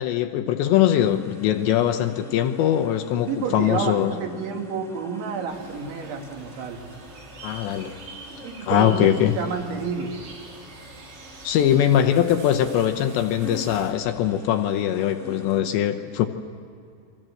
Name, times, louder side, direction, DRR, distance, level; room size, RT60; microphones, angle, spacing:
voice 1, 0.0-4.1 7.4-8.0 8.6-9.3 11.4-16.3, left 10 dB, 75° left, 7 dB, 2.9 m, -21 dB
sound 1, 1.0-15.6, left 1 dB, ahead, 1.6 m, -46 dB
voice 2, 3.3-6.8 8.4-10.1, right 5 dB, 70° right, 1 dB, 4.5 m, -30 dB
sound 2, 5.5-13.9, right 3 dB, 85° right, 6.3 m, -45 dB
28.0 x 24.0 x 7.8 m, 2.3 s
omnidirectional pair, 5.6 m